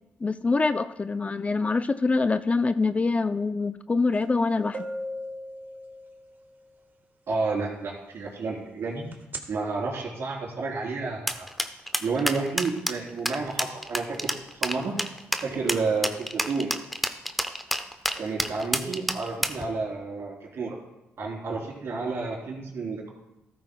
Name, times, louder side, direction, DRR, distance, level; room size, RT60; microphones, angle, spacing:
voice 1, 0.2-4.8, left 3 dB, 30° left, 12 dB, 0.4 m, -25 dB
sound 1, 4.2-4.3 4.7-6.5 9.1-9.4, equal, 40° right, 1.5 m, -36 dB
voice 2, 7.3-9.0 9.5-11.5 12.0-14.9 15.4-16.7 18.2-20.7 21.2-23.1, right 4 dB, 65° right, -2 dB, 3.5 m, -30 dB
sound 2, 11.3-19.6, equal, ahead, 0.8 m, -28 dB
13.5 x 12.5 x 2.3 m, 0.91 s
supercardioid pair, 60°, 5 cm